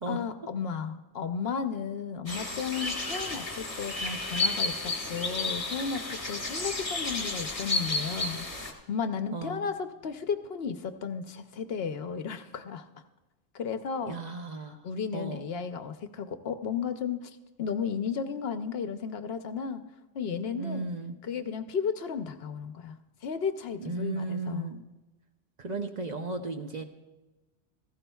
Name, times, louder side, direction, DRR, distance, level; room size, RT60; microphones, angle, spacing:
voice 1, 0.1-12.9 13.5-14.1 14.8-19.8 20.1-20.9 21.2-23.0 23.2-24.7, left 6 dB, 65° left, 9 dB, 0.8 m, -34 dB
sound 1, 2.3-8.7, left 2 dB, 30° left, 1.4 m, -32 dB
voice 2, 9.3-9.7 14.1-14.8 15.1-15.4 20.5-21.1 23.8-24.8 25.6-26.8, right 3 dB, 45° right, 4 dB, 0.7 m, -35 dB
16.0 x 14.5 x 2.3 m, 1.1 s
omnidirectional pair, 1.2 m